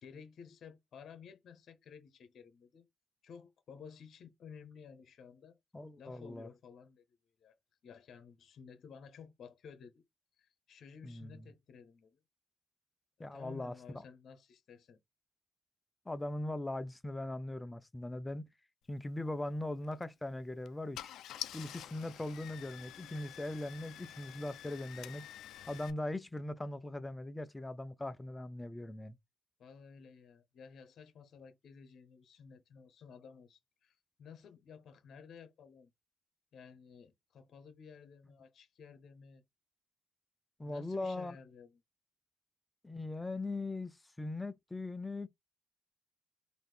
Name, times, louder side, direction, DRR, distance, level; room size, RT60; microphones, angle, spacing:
voice 1, 0.0-2.9 3.2-5.6 6.0-7.0 7.4-7.5 7.8-10.0 10.4-12.2 13.3-15.0 29.6-35.9 36.5-39.4 40.6-41.8, left 6 dB, 60° left, 1.0 m, -54 dB
voice 2, 5.7-6.5 11.0-11.3 13.2-13.7 16.1-18.5 18.9-21.1 21.5-25.2 25.7-29.2 40.6-41.4 42.8-45.3, left 2 dB, 15° left, 0.5 m, -40 dB
Car / Engine starting, 19.8-20.1 20.7-20.8 20.9-25.9, left 11 dB, 80° left, 0.4 m, -48 dB
4.0 x 2.7 x 3.3 m
cardioid pair, 90°, 0 cm